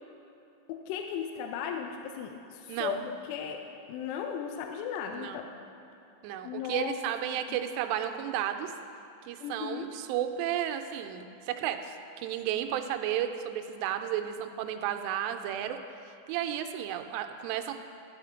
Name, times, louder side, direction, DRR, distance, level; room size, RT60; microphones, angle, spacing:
voice 1, 0.7-3.6 3.9-5.5 6.4-7.0 7.5-7.6 9.4-9.9, left 7 dB, 85° left, 4 dB, 2.7 m, -36 dB
voice 2, 5.1-5.4 6.2-8.7 9.3-12.0 12.2-15.8 16.3-17.7, right 10 dB, 85° right, 7 dB, 2.8 m, -33 dB
13.0 x 5.0 x 6.3 m, 2.9 s
omnidirectional pair, 4.9 m